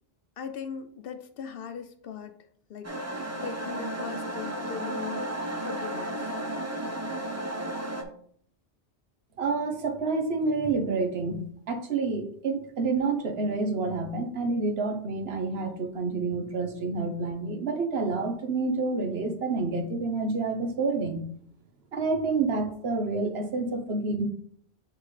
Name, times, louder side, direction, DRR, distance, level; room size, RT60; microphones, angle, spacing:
voice 1, 0.4-2.3 2.7-5.3 5.6-6.3, left 7 dB, 65° left, 8 dB, 0.8 m, -39 dB
sound 1, 2.8-8.0, right 1 dB, 20° right, 0.6 m, -33 dB
voice 2, 9.4-11.4 11.7-21.3 21.9-24.3, right 3 dB, 70° right, 5 dB, 1.1 m, -28 dB
7.4 x 4.4 x 3.2 m, 0.63 s
omnidirectional pair, 1.1 m